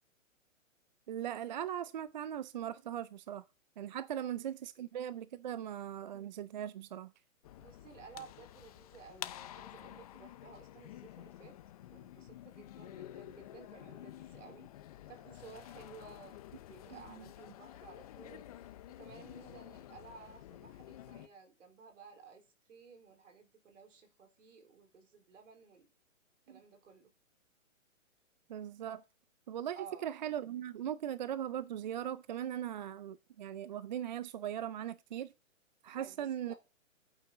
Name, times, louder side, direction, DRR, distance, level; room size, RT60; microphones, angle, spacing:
voice 1, 1.1-3.4 3.8-7.1 17.1-17.2 26.5-26.6 28.5-29.0 29.5-29.8 30.0-35.3 35.8-36.5, right 10 dB, 35° right, 0.5 m, -39 dB
sound 1, 7.4-21.3, left 13 dB, 30° left, 0.6 m, -50 dB
voice 2, 7.6-11.6 11.9-14.7 15.1-16.4 16.7-18.7 19.0-25.9 26.5-27.1 29.7-30.1 36.0-36.6, right 6 dB, 65° right, 4.3 m, -55 dB
11.5 x 8.8 x 3.9 m
hypercardioid pair, 140°, 40 cm